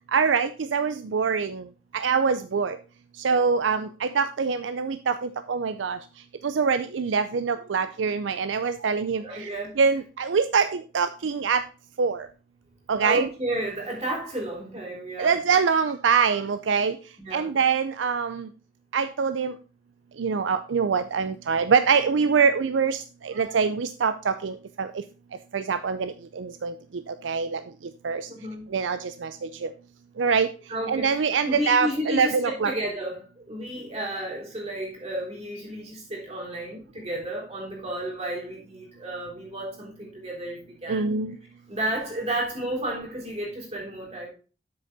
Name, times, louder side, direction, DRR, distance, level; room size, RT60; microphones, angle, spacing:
voice 1, 0.1-1.6 1.9-2.8 3.2-6.0 6.4-9.5 9.8-11.6 12.0-12.3 12.9-13.3 15.2-17.0 17.3-18.5 18.9-19.5 20.2-24.9 25.5-26.7 27.1-27.6 28.0-28.2 28.7-29.3 29.6-29.7 30.2-30.5 30.9-32.7 40.9-41.4, right 5 dB, 75° right, 12 dB, 0.5 m, -24 dB
voice 2, 9.2-9.8 13.0-15.4 17.2-17.5 28.3-28.7 30.7-41.1 41.7-44.3, right 1 dB, 35° right, -2 dB, 4.0 m, -32 dB
7.9 x 6.5 x 4.0 m, 0.35 s
head